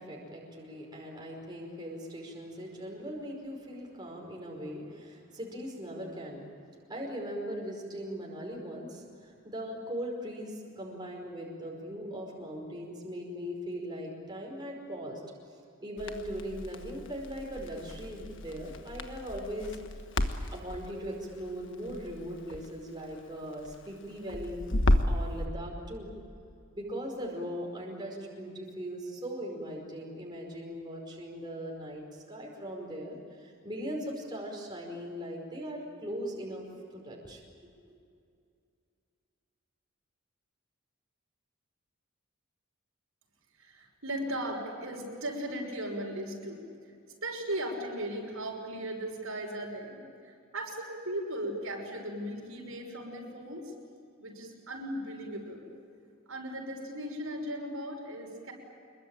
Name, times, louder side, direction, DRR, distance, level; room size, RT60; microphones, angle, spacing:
voice 1, 0.0-6.5 6.9-15.2 15.8-20.0 20.5-24.6 25.1-26.1 26.7-36.6 36.9-37.4 37.8-38.0, equal, 20° right, -2 dB, 5.1 m, -39 dB
Crackle, 16.0-25.3, left 1 dB, 55° left, 1.5 m, -33 dB
voice 2, 43.6-46.6 47.2-53.7 54.2-55.7 56.3-58.5, right 1 dB, 70° right, 0 dB, 6.1 m, -37 dB
27.0 x 22.5 x 9.0 m, 2.4 s
head